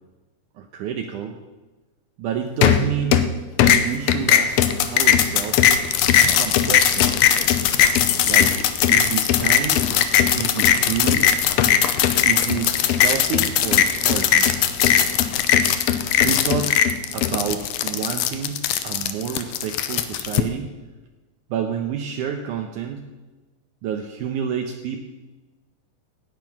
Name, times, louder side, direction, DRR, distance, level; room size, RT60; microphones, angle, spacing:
voice 1, 0.6-1.4 2.2-3.3 3.6-4.6 4.8-5.7 6.3-7.3 8.2-8.5 8.9-9.8 10.4-11.3 12.3-14.6 16.2-16.8 17.1-20.7 21.5-23.0 23.8-25.0, right 8 dB, 75° right, 3 dB, 2.3 m, -29 dB
sound 1, 2.6-3.3 3.6-20.4, left 9 dB, 80° left, 1.5 m, -19 dB
16.0 x 9.2 x 5.9 m, 1.2 s
omnidirectional pair, 3.7 m